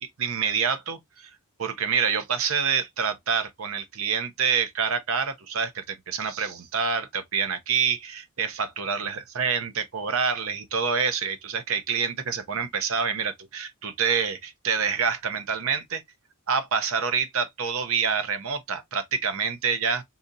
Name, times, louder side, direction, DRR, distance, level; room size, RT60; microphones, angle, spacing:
voice 1, 0.0-1.3 1.6-16.0 16.5-20.0, right 6 dB, 70° right, 0.6 m, -27 dB
3.9 x 2.8 x 2.5 m
head